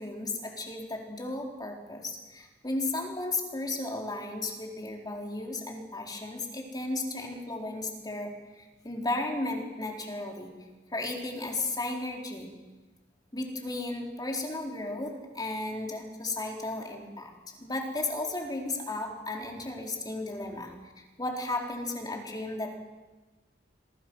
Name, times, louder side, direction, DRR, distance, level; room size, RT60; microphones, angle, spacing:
voice 1, 0.0-10.5 10.9-12.5 13.3-22.8, left 2 dB, 20° left, 1 dB, 4.1 m, -34 dB
26.5 x 24.0 x 6.4 m, 1.2 s
head